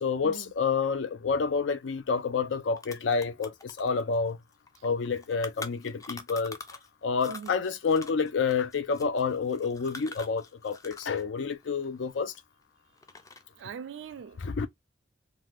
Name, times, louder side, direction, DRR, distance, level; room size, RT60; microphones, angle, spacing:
voice 1, 0.0-4.4 4.8-6.6 7.0-12.3 14.4-14.7, left 5 dB, 85° left, 0.5 m, -29 dB
sound 1, 2.2-2.3 2.5-6.9 7.2-11.2 11.5-12.6 13.0-13.6, left 3 dB, 20° left, 0.3 m, -45 dB
voice 2, 7.3-7.7 13.6-14.4, right 7 dB, 75° right, 0.3 m, -42 dB
2.7 x 2.2 x 3.2 m
head